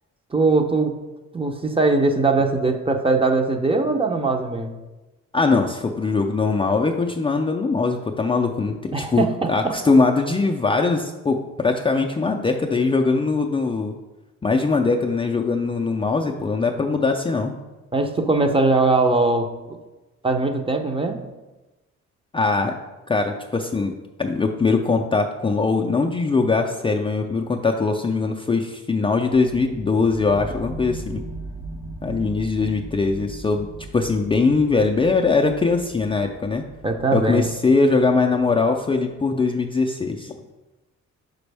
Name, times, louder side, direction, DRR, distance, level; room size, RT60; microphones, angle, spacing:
voice 1, 0.3-0.9 1.3-4.7 8.9-9.7 17.9-19.5 20.2-21.2 36.8-37.4, right 3 dB, 20° right, 5 dB, 0.6 m, -20 dB
voice 2, 5.3-13.9 14.4-17.5 22.3-22.7 23.1-23.9 24.2-31.3 32.0-33.7 33.9-36.6 37.1-40.3, left 4 dB, 20° left, 1 dB, 0.4 m, -21 dB
sound 1, 29.3-39.1, right 2 dB, 65° right, 1.8 m, -39 dB
6.1 x 5.2 x 3.4 m, 1.1 s
cardioid pair, 90°, 30 cm